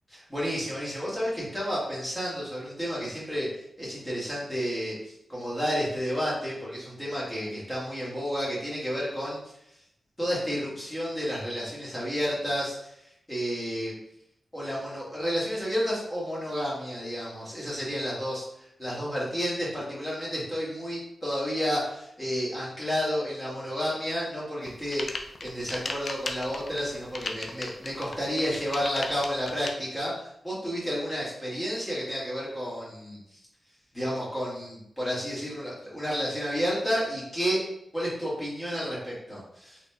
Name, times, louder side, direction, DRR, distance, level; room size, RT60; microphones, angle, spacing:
voice 1, 0.1-9.4 10.2-13.0 13.3-13.9 14.5-25.0 25.4-33.4 33.9-37.6 37.9-39.8, equal, 15° left, -7 dB, 1.4 m, -31 dB
sound 1, 24.6-29.7, left 3 dB, 65° left, 0.3 m, -36 dB
3.7 x 3.0 x 2.2 m, 0.78 s
wide cardioid pair, 95°, 0 cm